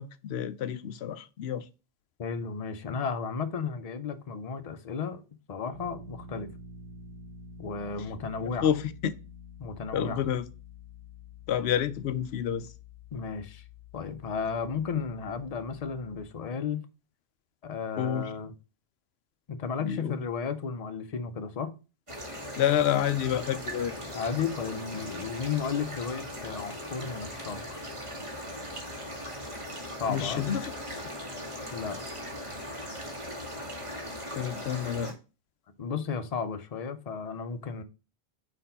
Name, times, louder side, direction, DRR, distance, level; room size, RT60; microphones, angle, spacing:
voice 1, 0.0-1.7 8.4-9.1 9.9-10.4 11.5-12.7 18.0-18.3 19.8-20.2 22.6-23.9 30.1-31.0 34.4-35.2, left 9 dB, 85° left, 0.8 m, -29 dB
voice 2, 2.2-5.2 5.5-6.5 7.6-8.7 9.6-10.2 13.1-13.6 13.9-16.9 17.6-18.5 19.5-21.7 24.1-27.8 30.0-30.4 31.7-32.0 35.8-37.8, left 6 dB, 45° left, 0.7 m, -34 dB
sound 1, 5.7-16.2, left 3 dB, 55° right, 1.3 m, -48 dB
sound 2, 22.1-35.1, equal, 30° right, 1.5 m, -39 dB
4.5 x 4.4 x 5.5 m
omnidirectional pair, 1.0 m